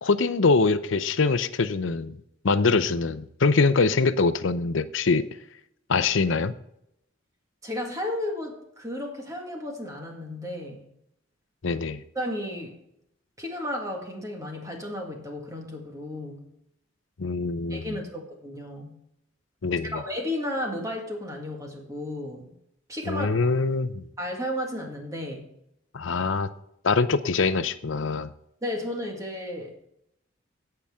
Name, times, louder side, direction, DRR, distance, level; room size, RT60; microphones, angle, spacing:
voice 1, 0.0-2.2 2.4-5.3 5.9-6.5 11.6-12.0 17.2-18.0 19.6-20.0 23.1-24.0 25.9-26.5 26.8-28.3, left 4 dB, 75° left, 12 dB, 0.6 m, -23 dB
voice 2, 7.6-10.9 12.2-12.8 13.4-16.5 17.7-19.0 19.9-22.6 22.9-23.6 24.2-25.5 28.6-29.9, left 1 dB, 15° right, 1 dB, 1.8 m, -33 dB
17.0 x 5.8 x 3.6 m, 0.78 s
head